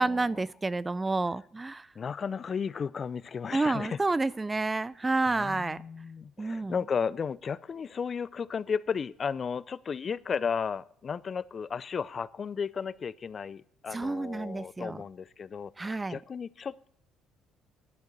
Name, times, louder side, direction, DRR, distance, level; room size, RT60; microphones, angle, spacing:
voice 1, 0.0-1.9 3.5-5.8 6.4-6.7 13.9-15.0 15.8-16.2, right 3 dB, 20° right, 21 dB, 0.4 m, -29 dB
voice 2, 2.0-4.0 5.3-16.9, left 6 dB, 40° left, 20 dB, 0.5 m, -34 dB
11.0 x 6.5 x 8.6 m, 0.63 s
supercardioid pair, 90°, 0 cm